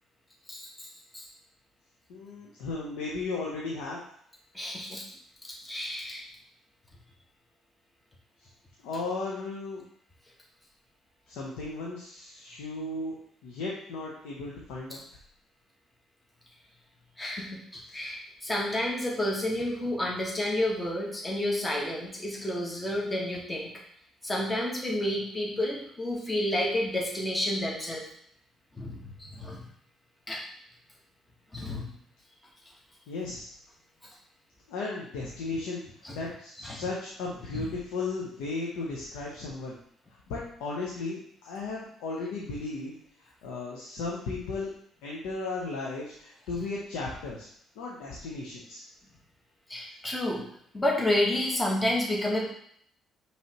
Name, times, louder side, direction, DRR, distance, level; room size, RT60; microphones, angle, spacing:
voice 1, 0.5-0.9 1.1-1.2 4.5-5.1 5.4-6.2 14.9-15.0 17.2-23.7 24.2-28.0 28.8-29.6 30.3-30.4 31.5-31.9 36.0-36.1 36.6-36.8 37.5-37.7 49.7-50.4 50.7-52.5, left 1 dB, 15° left, -2 dB, 1.3 m, -30 dB
voice 2, 2.1-4.0 8.4-8.5 8.8-9.9 11.3-13.1 13.4-15.0 33.1-33.5 34.7-39.8 40.1-44.7 45.0-47.5 47.8-48.8, left 3 dB, 90° left, -4 dB, 0.8 m, -35 dB
5.4 x 3.2 x 3.0 m, 0.66 s
supercardioid pair, 80°, 0 cm